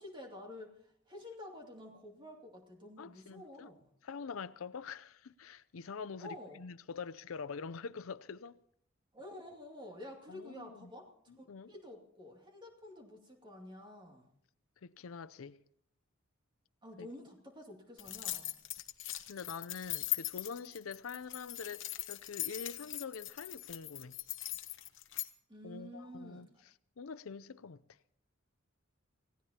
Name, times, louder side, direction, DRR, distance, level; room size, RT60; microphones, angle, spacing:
voice 1, 0.0-3.9 6.2-6.6 9.1-11.1 11.4-14.3 16.8-18.6 25.5-26.5, left 1 dB, 25° right, 2.5 m, -50 dB
voice 2, 3.0-3.7 4.0-8.6 10.3-10.9 11.5-11.7 14.8-15.6 17.0-17.1 19.2-24.1 25.6-26.5 27.0-27.8, left 5 dB, 85° left, 0.5 m, -45 dB
sound 1, 18.0-25.3, left 15 dB, 60° left, 1.0 m, -40 dB
27.5 x 16.5 x 2.9 m
head